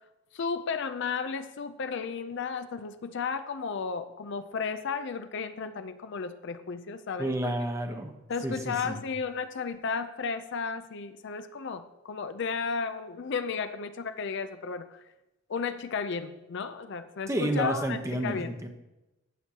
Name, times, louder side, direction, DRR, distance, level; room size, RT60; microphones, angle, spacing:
voice 1, 0.3-7.6 8.3-15.0 15.5-18.6, left 5 dB, 60° left, 10 dB, 0.5 m, -34 dB
voice 2, 7.2-8.1 8.4-9.0 17.3-18.7, right 1 dB, 15° right, 5 dB, 0.9 m, -30 dB
14.5 x 6.2 x 2.8 m, 0.97 s
head